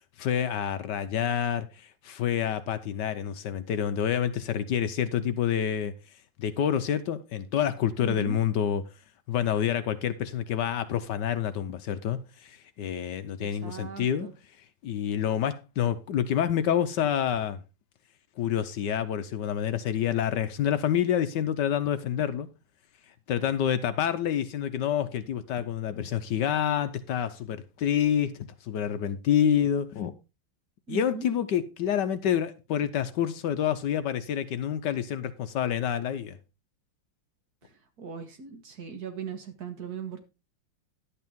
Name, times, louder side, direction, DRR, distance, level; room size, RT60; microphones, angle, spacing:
voice 1, 0.2-5.9 6.4-8.8 9.3-14.3 14.8-17.6 18.4-22.5 23.3-30.1 30.9-36.4, left 9 dB, 70° left, 1.2 m, -28 dB
voice 2, 8.0-8.4 13.4-14.3 30.9-31.3 37.6-40.3, right 6 dB, 55° right, 1.9 m, -39 dB
11.0 x 8.5 x 3.5 m
omnidirectional pair, 2.1 m